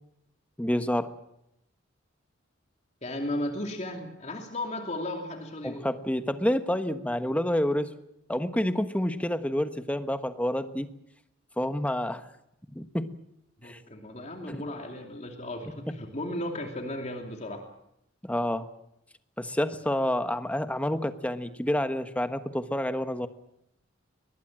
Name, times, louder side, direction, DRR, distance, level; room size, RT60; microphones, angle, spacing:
voice 1, 0.6-1.1 5.6-7.9 8.3-10.9 11.6-12.3 12.7-13.1 13.6-13.8 14.5-14.6 18.2-18.7 19.4-23.3, left 1 dB, 5° left, 10 dB, 1.2 m, -28 dB
voice 2, 3.0-5.9 13.6-17.6, left 1 dB, 35° left, 3 dB, 2.7 m, -35 dB
22.5 x 20.0 x 7.6 m, 0.81 s
head